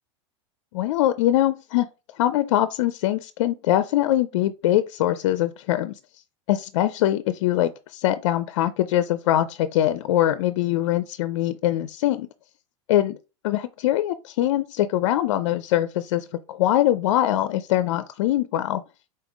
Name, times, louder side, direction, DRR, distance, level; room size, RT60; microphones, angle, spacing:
voice 1, 0.7-1.9 2.2-5.9 6.5-12.3 12.9-13.2 13.4-18.8, left 13 dB, 70° left, 0.4 m, -23 dB
4.2 x 3.6 x 3.5 m
hypercardioid pair, 105°, 16 cm